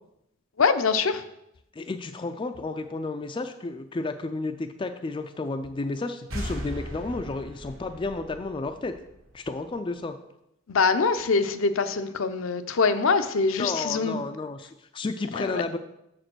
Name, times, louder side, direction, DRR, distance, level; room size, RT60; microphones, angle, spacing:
voice 1, 0.6-1.2 10.7-14.2 15.4-15.6, left 4 dB, 70° left, 9 dB, 0.6 m, -24 dB
voice 2, 1.7-8.9 9.3-10.2 13.6-15.8, left 3 dB, 25° left, 7 dB, 0.3 m, -32 dB
sound 1, 6.3-9.8, equal, 65° right, 1.4 m, -38 dB
6.8 x 5.0 x 6.1 m, 0.82 s
head